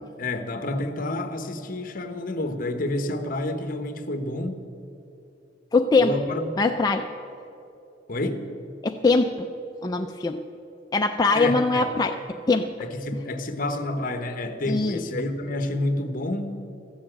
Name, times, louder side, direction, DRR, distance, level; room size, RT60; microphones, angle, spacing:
voice 1, 0.2-4.7 6.0-6.5 8.1-8.5 11.3-11.9 12.8-16.7, left 1 dB, 50° left, 8 dB, 1.0 m, -29 dB
voice 2, 5.7-6.2 6.6-7.1 8.8-9.5 9.8-10.4 10.9-12.2 12.5-12.7 14.6-15.0, left 3 dB, 20° left, 4 dB, 0.4 m, -22 dB
14.0 x 7.2 x 8.7 m, 2.7 s
head